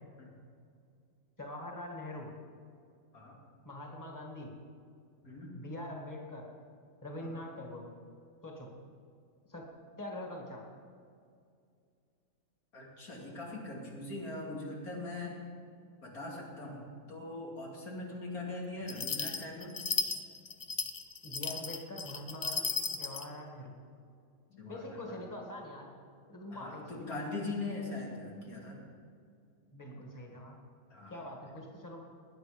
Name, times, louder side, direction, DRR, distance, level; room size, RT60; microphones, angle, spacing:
voice 1, 1.4-2.3 3.6-4.5 5.5-6.5 7.0-7.8 8.4-8.7 9.5-9.7 10.0-10.6 21.2-23.7 24.7-25.9 26.3-27.0 29.7-30.6 31.1-32.1, left 1 dB, 15° left, 0 dB, 1.9 m, -43 dB
voice 2, 5.2-5.5 7.2-7.4 12.7-15.4 16.0-19.8 24.5-25.2 26.5-28.9 30.9-31.2, left 2 dB, 85° left, -3 dB, 3.3 m, -41 dB
sound 1, 18.9-23.3, left 4 dB, 40° left, 0.6 m, -35 dB
20.0 x 9.6 x 5.2 m, 2.3 s
omnidirectional pair, 1.5 m